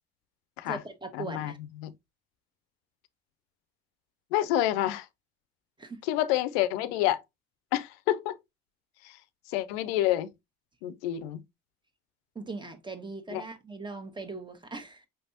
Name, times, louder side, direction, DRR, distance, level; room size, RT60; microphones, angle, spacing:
voice 1, 0.6-1.6 5.8-6.0 12.3-15.1, right 3 dB, 15° right, 1.3 m, -40 dB
voice 2, 1.2-1.5 1.8-1.9 4.3-5.1 6.1-7.2 7.7-8.4 9.0-9.2 9.5-10.3 10.8-11.4 13.3-13.4, left 13 dB, 85° left, 0.6 m, -28 dB
5.5 x 3.3 x 2.8 m
supercardioid pair, 70°, 30 cm